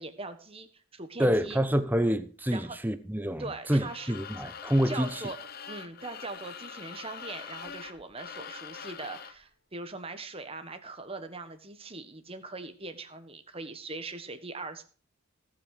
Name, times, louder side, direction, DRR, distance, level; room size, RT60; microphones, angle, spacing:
voice 1, 0.0-1.6 2.5-2.8 3.4-4.1 4.8-5.4 5.7-14.8, right 3 dB, 25° right, 1.4 m, -41 dB
voice 2, 1.2-5.2, equal, 10° right, 0.9 m, -27 dB
sound 1, 3.7-9.4, left 7 dB, 45° left, 0.8 m, -44 dB
18.5 x 6.2 x 6.6 m
head